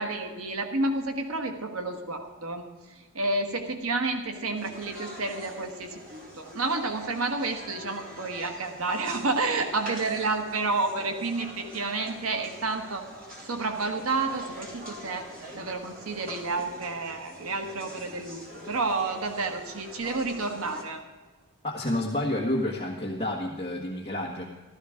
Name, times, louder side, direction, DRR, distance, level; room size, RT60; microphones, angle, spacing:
voice 1, 0.0-13.1 13.5-15.3 15.5-21.0, right 3 dB, 85° right, 5 dB, 1.4 m, -30 dB
sound 1, 4.5-20.8, equal, 40° right, 3.2 m, -44 dB
voice 2, 21.6-24.4, left 1 dB, 25° left, -4 dB, 1.5 m, -29 dB
14.5 x 13.0 x 5.0 m, 1.3 s
head